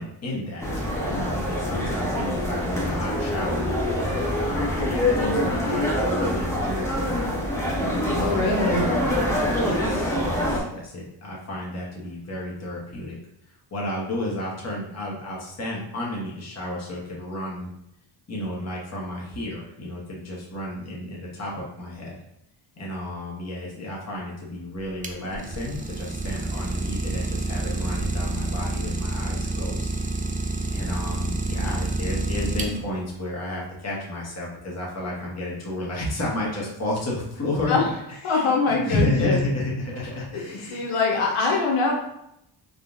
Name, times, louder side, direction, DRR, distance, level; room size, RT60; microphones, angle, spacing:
voice 1, 0.0-3.7 4.4-7.3 8.0-9.3 9.6-13.2 13.7-17.7 18.3-22.1 22.8-29.9 30.3-40.9, left 1 dB, 30° left, -4 dB, 1.0 m, -32 dB
sound 1, 0.6-10.6, left 1 dB, 5° left, 0.9 m, -25 dB
voice 2, 8.2-8.8 37.7-37.8 38.2-39.4 40.3-41.9, left 4 dB, 85° left, 0 dB, 0.9 m, -23 dB
Idling, 24.7-33.1, right 2 dB, 20° right, 0.3 m, -28 dB
3.7 x 2.3 x 2.5 m, 0.79 s
cardioid pair, 65°, 49 cm